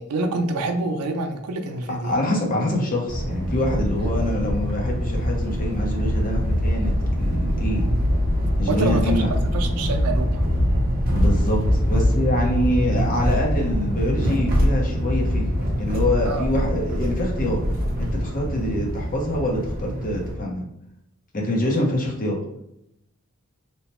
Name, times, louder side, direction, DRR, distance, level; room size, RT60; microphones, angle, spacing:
voice 1, 0.0-2.1 4.0-4.1 8.7-10.3 16.2-16.5, right 3 dB, 85° right, 5 dB, 0.4 m, -27 dB
voice 2, 2.0-7.9 8.6-9.3 11.1-17.6 18.0-20.6 21.3-22.4, left 1 dB, 40° left, -1 dB, 0.7 m, -25 dB
sound 1, 3.1-20.3, equal, 45° right, 0.6 m, -23 dB
2.9 x 2.0 x 2.9 m, 0.80 s
head